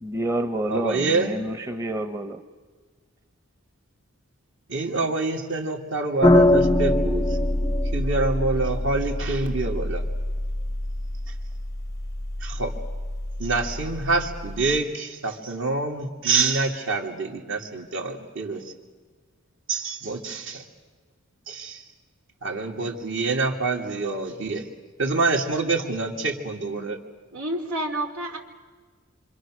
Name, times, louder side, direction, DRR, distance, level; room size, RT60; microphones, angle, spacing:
voice 1, 0.0-2.4, right 1 dB, 15° right, 0.9 m, -28 dB
voice 2, 0.7-1.3 4.7-7.5 7.9-10.0 12.4-12.7 13.4-18.6 19.7-20.6 21.5-21.8 22.4-24.7 25.0-27.0, right 3 dB, 60° right, 2.7 m, -26 dB
sound 1, 6.2-14.8, left 1 dB, 15° left, 0.6 m, -24 dB
voice 3, 27.3-28.4, right 1 dB, 85° right, 3.0 m, -29 dB
27.0 x 25.5 x 6.5 m
head